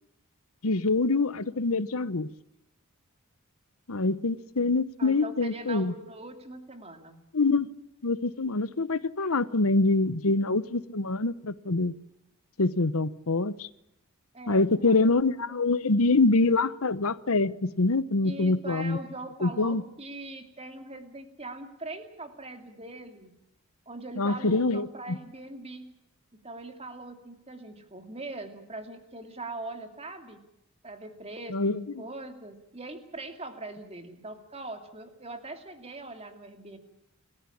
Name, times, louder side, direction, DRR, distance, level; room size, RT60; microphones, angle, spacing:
voice 1, 0.6-2.3 3.9-5.9 7.3-7.7 8.0-11.9 12.6-13.7 14.5-19.0 19.4-19.8 24.2-25.2 31.5-31.8, left 3 dB, 75° left, 16 dB, 1.0 m, -25 dB
voice 2, 5.0-7.2 14.3-15.6 18.2-23.3 23.9-25.9 26.3-30.4 30.8-36.8, right 2 dB, 25° right, 7 dB, 2.7 m, -41 dB
29.5 x 14.5 x 8.7 m, 0.84 s
head